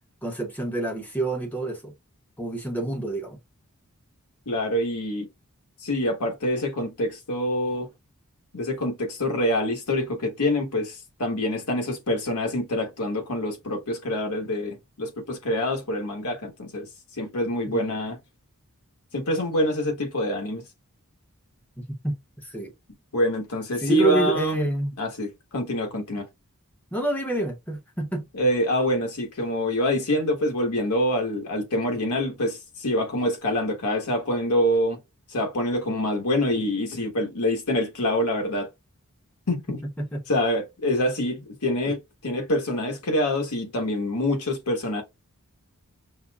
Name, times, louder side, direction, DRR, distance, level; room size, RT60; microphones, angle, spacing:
voice 1, 0.2-1.9 2.4-3.4 17.7-17.9 21.8-22.1 22.4-22.7 23.8-24.9 26.9-28.3 40.0-40.2, right 2 dB, 5° left, 0.9 m, -28 dB
voice 2, 4.5-5.3 5.8-7.9 8.5-16.9 17.2-18.2 19.1-20.6 23.1-24.7 25.0-26.3 28.3-35.0 35.3-38.7 39.5-39.8 40.3-45.0, left 1 dB, 85° left, 1.3 m, -26 dB
5.4 x 2.1 x 2.2 m
head